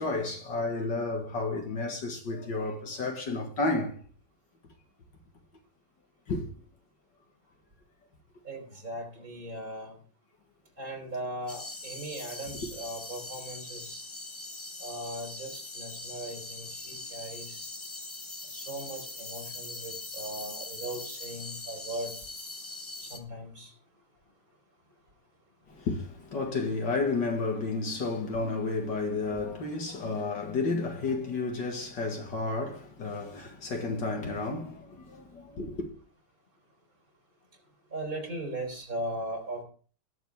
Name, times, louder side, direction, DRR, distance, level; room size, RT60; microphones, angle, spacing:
voice 1, 0.0-3.9 6.3-6.5 25.7-35.9, left 3 dB, 60° left, 2.4 m, -31 dB
voice 2, 8.5-10.0 10.8-14.0 14.8-17.7 18.5-22.1 23.0-23.7 37.9-39.6, right 1 dB, 45° right, 4.0 m, -38 dB
sound 1, 11.5-23.2, left 2 dB, 20° left, 0.7 m, -41 dB
19.5 x 7.2 x 3.5 m
omnidirectional pair, 2.3 m